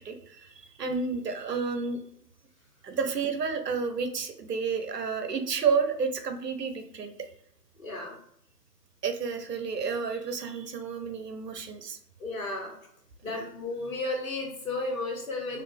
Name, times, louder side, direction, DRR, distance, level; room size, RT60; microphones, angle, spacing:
voice 1, 0.0-2.0 2.8-7.1 9.0-12.0 13.3-13.5, right 5 dB, 70° right, 7 dB, 0.8 m, -31 dB
voice 2, 7.8-8.2 12.2-12.7 13.2-15.6, left 2 dB, 55° left, -1 dB, 1.4 m, -33 dB
3.2 x 2.7 x 3.3 m, 0.71 s
hypercardioid pair, 160°, 50 cm